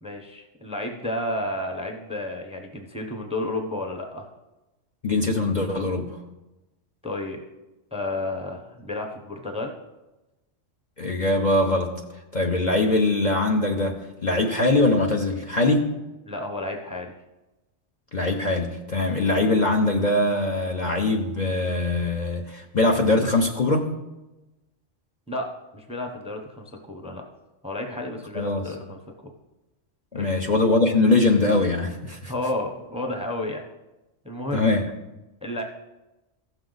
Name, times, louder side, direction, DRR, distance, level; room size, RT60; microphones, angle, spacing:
voice 1, 0.0-4.2 7.0-7.4 7.9-9.7 16.3-17.1 25.3-27.3 27.6-29.3 30.1-30.3 32.3-33.6 34.2-34.7 35.4-35.6, left 1 dB, 5° right, 3 dB, 0.7 m, -31 dB
voice 2, 5.0-6.1 11.0-11.9 12.3-15.9 18.1-23.9 28.3-28.7 30.1-32.3 34.5-34.8, left 2 dB, 40° left, 1 dB, 0.8 m, -22 dB
15.0 x 6.4 x 4.0 m, 1.0 s
omnidirectional pair, 1.3 m